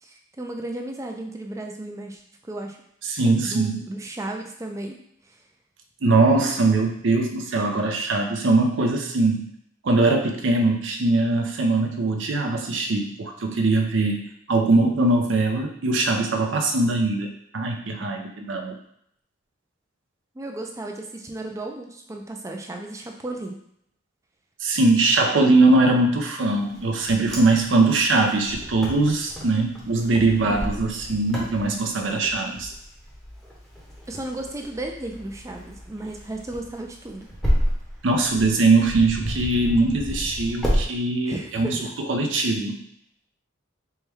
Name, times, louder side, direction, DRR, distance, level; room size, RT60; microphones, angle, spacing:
voice 1, 0.0-2.8 3.3-5.0 5.3-5.4 20.3-23.6 30.4-30.7 34.1-37.3 41.3-41.9, right 2 dB, 15° right, 2 dB, 0.4 m, -34 dB
voice 2, 3.1-3.8 6.0-9.5 9.8-18.8 24.6-32.7 38.0-41.8 42.1-42.8, right 2 dB, 70° right, 3 dB, 0.5 m, -21 dB
Wind, 26.7-40.8, equal, ahead, 0.8 m, -31 dB
4.5 x 2.2 x 3.4 m, 0.71 s
head